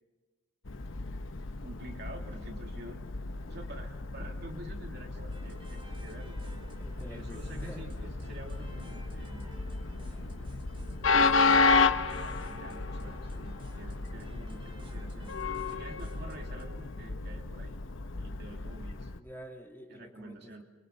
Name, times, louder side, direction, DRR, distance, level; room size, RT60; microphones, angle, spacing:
Train, 0.6-19.2, left 4 dB, 80° left, 0.9 m, -32 dB
voice 1, 1.6-3.1 3.5-6.4 7.1-7.9 8.3-9.5 11.1-15.4 15.7-17.8 18.2-19.1 19.9-20.6, right 1 dB, 55° right, 2 dB, 2.8 m, -48 dB
sound 1, 5.3-16.7, equal, 25° right, 3.6 m, -49 dB
voice 2, 6.8-7.9 19.1-20.6, equal, 10° left, 1 dB, 2.4 m, -48 dB
28.5 x 23.5 x 5.5 m, 1.2 s
head